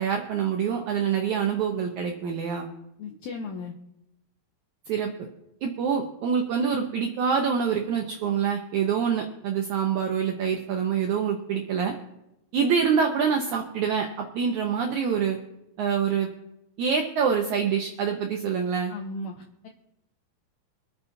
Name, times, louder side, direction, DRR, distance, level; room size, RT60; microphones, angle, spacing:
voice 1, 0.0-2.7 4.9-5.1 5.6-11.9 12.5-14.1 14.3-15.4 15.8-16.3 16.8-18.9, right 7 dB, 75° right, 2 dB, 1.8 m, -25 dB
voice 2, 3.0-3.7 18.9-19.7, left 3 dB, 85° left, 4 dB, 1.6 m, -36 dB
25.0 x 9.5 x 2.7 m, 0.89 s
omnidirectional pair, 4.4 m